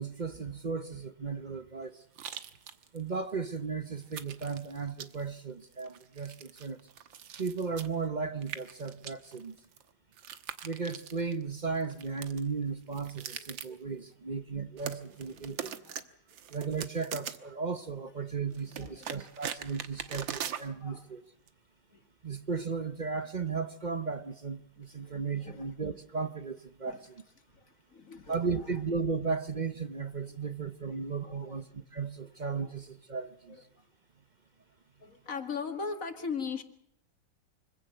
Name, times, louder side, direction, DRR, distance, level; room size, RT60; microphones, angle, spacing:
voice 1, 0.0-2.0 2.9-6.8 7.4-9.5 10.6-15.7 16.5-21.2 22.2-27.2 28.3-33.7, right 5 dB, 40° right, 0.7 m, -35 dB
sound 1, 2.1-3.0 3.3-3.4 4.0-5.3 5.6-8.0 8.4-11.4 11.8-12.4 12.9-13.8 14.8-16.0 16.3-17.5 18.5-20.7 21.5-21.6, right 9 dB, 80° right, 1.9 m, -42 dB
voice 2, 15.2-16.0 18.5-19.3 20.6-21.1 21.9-22.0 24.8-25.7 26.8-27.0 27.5-28.7 30.4-30.5 30.8-31.6 32.6-32.7 33.5-33.6 35.0-36.6, left 5 dB, 45° left, 2.3 m, -41 dB
25.0 x 16.5 x 7.7 m
omnidirectional pair, 2.1 m